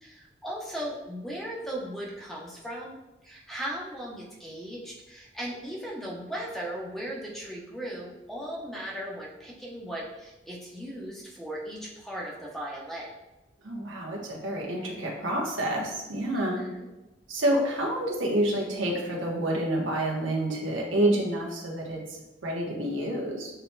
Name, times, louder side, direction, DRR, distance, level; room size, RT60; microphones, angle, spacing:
voice 1, 0.0-3.0 3.2-13.1 16.3-16.9, equal, ahead, -4 dB, 0.8 m, -37 dB
voice 2, 13.6-16.6 17.3-23.5, right 1 dB, 90° right, -2 dB, 1.1 m, -28 dB
7.9 x 2.8 x 2.3 m, 1.0 s
head